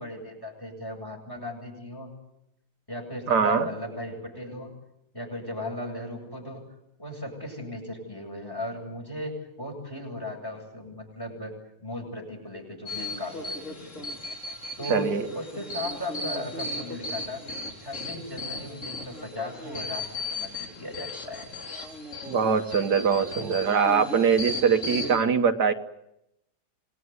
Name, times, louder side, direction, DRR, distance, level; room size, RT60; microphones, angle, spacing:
voice 1, 0.0-2.1 2.9-4.7 5.1-6.6 7.0-11.5 11.8-14.1 14.8-17.4 17.8-21.5 23.3-23.6, left 1 dB, 15° left, 2 dB, 8.1 m, -37 dB
voice 2, 3.3-3.7 14.9-15.3 22.3-25.7, right 6 dB, 85° right, 7 dB, 1.8 m, -22 dB
sound 1, 12.9-25.2, left 2 dB, 50° left, 4.1 m, -36 dB
27.0 x 20.0 x 9.5 m, 0.85 s
omnidirectional pair, 1.7 m